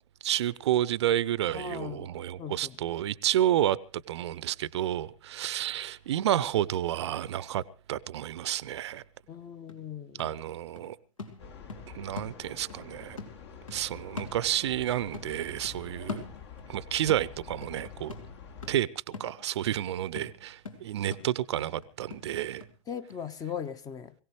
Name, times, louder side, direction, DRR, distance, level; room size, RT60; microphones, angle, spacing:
voice 1, 0.2-3.8 4.1-7.6 7.9-9.0 10.2-11.0 11.9-13.2 13.7-16.2 16.7-18.1 18.7-22.7, right 12 dB, 55° right, 0.7 m, -30 dB
voice 2, 1.5-2.1 2.4-2.8 9.3-10.3 22.9-24.1, left 8 dB, 20° left, 1.0 m, -38 dB
sound 1, 9.2-9.3 9.7-12.8 13.2-14.9 15.1-16.7 17.1-22.7 23.1-23.2, left 4 dB, 80° left, 2.8 m, -44 dB
sound 2, 11.4-18.7, left 6 dB, 55° left, 2.8 m, -47 dB
22.0 x 17.0 x 3.1 m
figure-of-eight pair, 100°, 17 cm